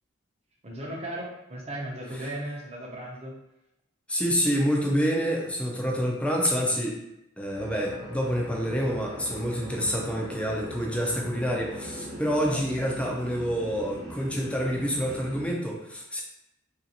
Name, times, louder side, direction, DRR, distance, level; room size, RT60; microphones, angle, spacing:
voice 1, 0.6-3.3 12.5-13.2 14.6-14.7, right 1 dB, 30° right, -2 dB, 0.7 m, -37 dB
voice 2, 4.1-7.0 7.4-16.2, equal, 5° left, -1 dB, 0.5 m, -27 dB
sound 1, 7.5-15.5, equal, 70° right, 0.9 m, -40 dB
3.0 x 2.6 x 2.8 m, 0.85 s
head